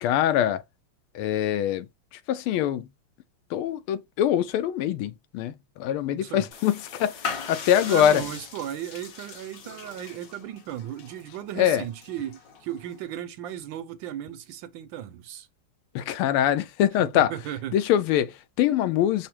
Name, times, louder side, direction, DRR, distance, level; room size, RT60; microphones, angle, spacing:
voice 1, 0.0-0.6 1.1-2.9 3.5-8.2 11.6-11.8 15.9-17.3 17.7-19.3, left 10 dB, 85° left, 1.5 m, -24 dB
voice 2, 6.1-6.4 7.9-15.5 17.0-17.8, right 11 dB, 75° right, 1.2 m, -36 dB
sound 1, 6.5-13.2, left 6 dB, 60° left, 1.6 m, -39 dB
5.8 x 2.0 x 4.6 m
omnidirectional pair, 2.3 m